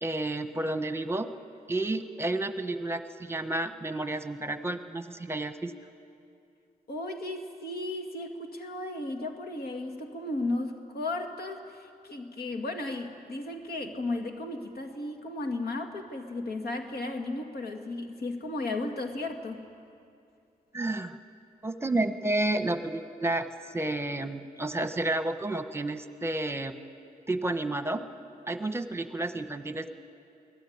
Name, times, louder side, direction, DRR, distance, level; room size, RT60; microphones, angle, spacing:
voice 1, 0.0-1.3 1.7-5.7 20.7-21.2 21.6-26.7 27.3-28.0 28.5-29.9, right 2 dB, 15° right, 8 dB, 1.1 m, -31 dB
voice 2, 6.9-19.6, left 2 dB, 85° left, 4 dB, 2.2 m, -35 dB
23.5 x 17.5 x 9.5 m, 2.5 s
wide cardioid pair, 95°, 16 cm